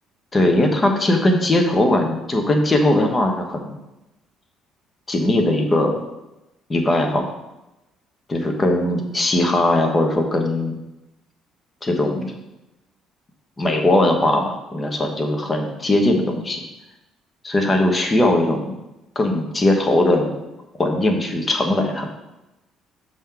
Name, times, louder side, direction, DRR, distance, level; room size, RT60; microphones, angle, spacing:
voice 1, 0.3-3.8 5.1-6.0 6.7-7.3 8.3-10.8 11.8-12.3 13.6-16.6 17.4-18.7 19.1-20.4 20.8-22.1, left 1 dB, 25° left, 3 dB, 1.1 m, -19 dB
6.1 x 3.8 x 5.8 m, 0.96 s
cardioid pair, 105°, 0 cm